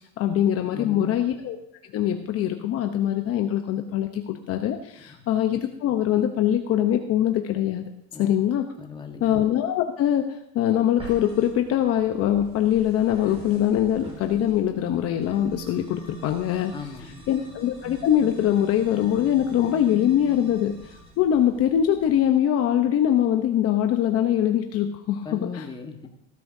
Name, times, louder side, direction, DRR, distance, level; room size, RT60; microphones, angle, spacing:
voice 1, 0.0-1.6 1.9-7.9 8.2-8.7 9.2-16.7 17.3-25.7, left 10 dB, 40° left, 5 dB, 0.9 m, -23 dB
voice 2, 0.7-1.4 5.1-5.2 8.1-8.4 8.8-9.4 16.7-17.3 25.2-26.1, left 5 dB, 10° left, 4 dB, 1.4 m, -38 dB
sound 1, 11.0-22.3, right 1 dB, 15° right, 4.6 m, -45 dB
18.0 x 12.0 x 2.7 m, 0.82 s
supercardioid pair, 135°, 38 cm